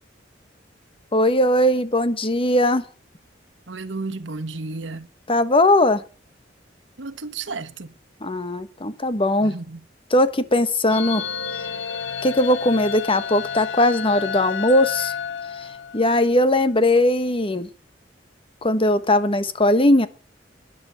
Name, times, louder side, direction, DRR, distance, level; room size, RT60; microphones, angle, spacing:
voice 1, 1.1-2.8 5.3-6.0 8.2-9.5 10.1-11.2 12.2-15.1 15.6-15.7 15.9-17.7 18.6-20.1, left 1 dB, 30° left, 1.3 m, -19 dB
voice 2, 3.7-5.1 7.0-7.9 9.4-9.8, right 3 dB, 85° right, 1.2 m, -32 dB
sound 1, 10.9-16.3, left 7 dB, 90° left, 1.2 m, -30 dB
13.0 x 9.9 x 7.8 m
head